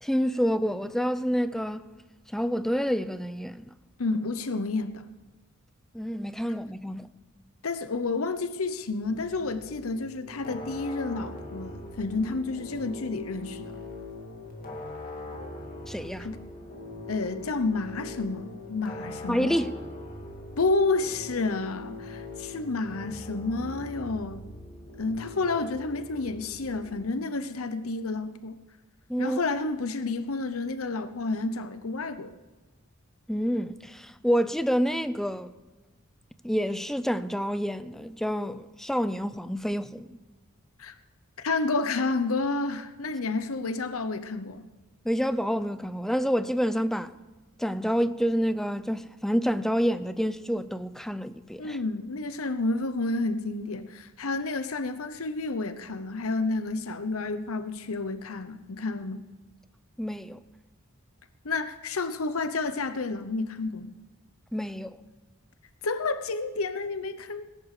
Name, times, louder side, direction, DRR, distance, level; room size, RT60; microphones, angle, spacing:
voice 1, 0.0-1.9 2.3-3.7 5.9-7.1 15.9-16.3 19.3-19.8 29.1-29.4 33.3-35.5 36.4-40.2 45.0-47.1 47.6-51.8 60.0-60.4 64.5-65.0, equal, ahead, 0.5 m, -28 dB
voice 2, 4.0-5.1 7.6-13.8 16.2-16.4 17.1-19.6 20.6-24.4 25.0-28.6 29.2-32.3 40.8-40.9 41.4-44.6 51.6-59.2 61.4-63.9 65.8-67.5, left 3 dB, 80° left, 0.9 m, -30 dB
sound 1, 9.0-27.1, left 2 dB, 45° left, 2.5 m, -41 dB
19.0 x 11.0 x 5.0 m
head